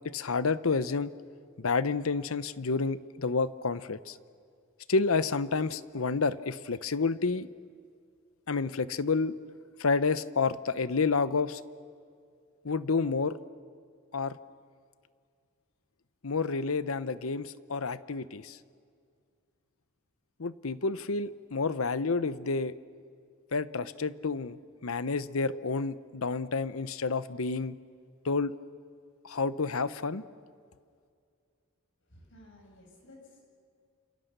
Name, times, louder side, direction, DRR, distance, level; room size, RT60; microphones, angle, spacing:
voice 1, 0.0-1.1 1.6-4.2 4.9-7.5 8.5-9.3 9.8-11.6 12.6-13.4 14.1-14.4 16.2-18.6 20.4-22.7 23.5-27.8 28.2-28.5 29.2-30.2, left 4 dB, 75° left, 15 dB, 0.8 m, -29 dB
voice 2, 32.1-33.4, left 1 dB, 60° left, 0 dB, 7.9 m, -54 dB
29.0 x 27.5 x 6.8 m, 2.2 s
head